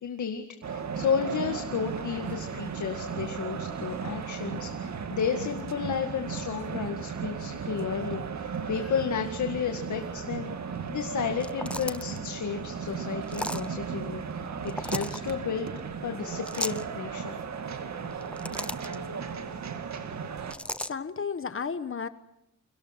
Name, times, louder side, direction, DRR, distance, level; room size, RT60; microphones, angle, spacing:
voice 1, 0.0-10.5 10.9-15.7 16.0-17.4 18.6-18.7, left 7 dB, 75° left, 5 dB, 2.1 m, -32 dB
sound 1, 0.6-20.5, right 6 dB, 65° right, 2.3 m, -35 dB
sound 2, 11.4-12.2 13.3-13.7 14.7-15.2 16.5-16.8 18.1-19.0 20.5-20.9, left 1 dB, 5° left, 0.8 m, -35 dB
voice 2, 20.8-22.1, left 6 dB, 45° left, 12 dB, 1.2 m, -33 dB
30.0 x 23.5 x 6.0 m, 0.82 s
cardioid pair, 100°, 30 cm